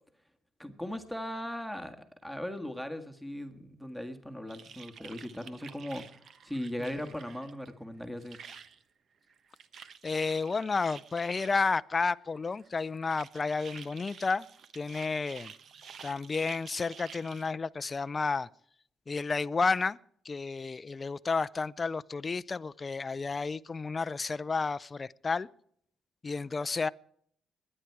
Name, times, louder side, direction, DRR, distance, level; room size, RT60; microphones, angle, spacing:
voice 1, 0.6-2.0 2.2-6.2 6.4-8.4, left 1 dB, ahead, 1.8 m, -38 dB
sound 1, 4.5-7.7 8.0-8.8 9.3-11.6 12.5-17.5, right 6 dB, 60° right, 1.0 m, -50 dB
voice 2, 10.0-14.5 14.7-15.5 16.0-18.5 19.1-20.0 20.3-25.5 26.2-26.9, left 4 dB, 30° left, 0.5 m, -31 dB
21.5 x 9.9 x 4.7 m
cardioid pair, 90°, 0 cm